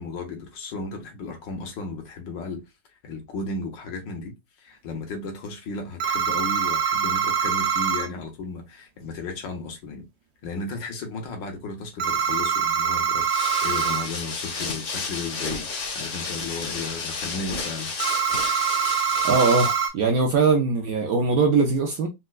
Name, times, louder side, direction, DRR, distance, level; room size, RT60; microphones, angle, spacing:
voice 1, 0.0-2.6 3.0-4.3 4.6-10.0 10.4-15.7 15.9-18.9, left 3 dB, 75° left, 1.6 m, -34 dB
sound 1, 6.0-8.1 12.0-14.1 18.0-19.9, right 7 dB, 85° right, 1.4 m, -24 dB
sound 2, 13.2-19.9, left 4 dB, 50° left, 1.1 m, -32 dB
voice 2, 19.2-22.1, right 4 dB, 65° right, 0.9 m, -21 dB
4.2 x 2.2 x 2.3 m
omnidirectional pair, 2.0 m